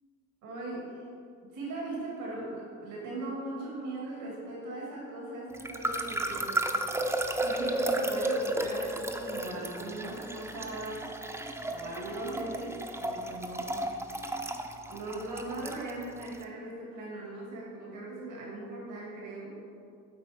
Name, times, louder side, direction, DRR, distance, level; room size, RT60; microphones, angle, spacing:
voice 1, 0.4-1.1 1.5-6.9 7.4-11.1 11.7-13.8 14.9-19.6, right 2 dB, 85° right, -4 dB, 1.9 m, -39 dB
sound 1, 5.5-16.4, right 1 dB, 10° right, 0.5 m, -33 dB
8.3 x 4.1 x 4.9 m, 2.5 s
cardioid pair, 90°, 30 cm